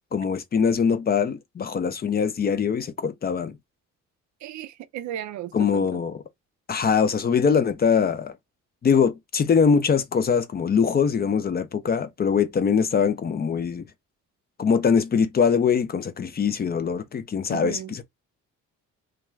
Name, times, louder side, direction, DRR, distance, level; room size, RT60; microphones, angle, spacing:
voice 1, 0.1-3.6 5.5-6.2 6.7-8.3 8.8-13.8 14.6-18.0, left 6 dB, 30° left, 0.4 m, -22 dB
voice 2, 4.4-6.0 17.5-17.9, right 12 dB, 70° right, 0.5 m, -35 dB
2.3 x 2.3 x 3.0 m
cardioid pair, 90°, 30 cm